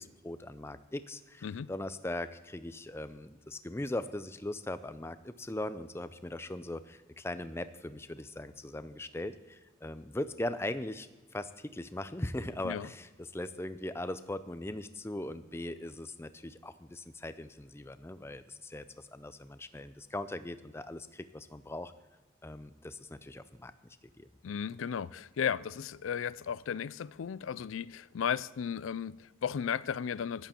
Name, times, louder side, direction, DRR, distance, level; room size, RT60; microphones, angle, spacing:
voice 1, 0.0-11.1 11.3-21.9 22.4-24.3, left 1 dB, 15° left, 0.5 m, -40 dB
voice 2, 24.4-30.5, left 7 dB, 85° left, 0.4 m, -35 dB
14.5 x 11.5 x 4.4 m
head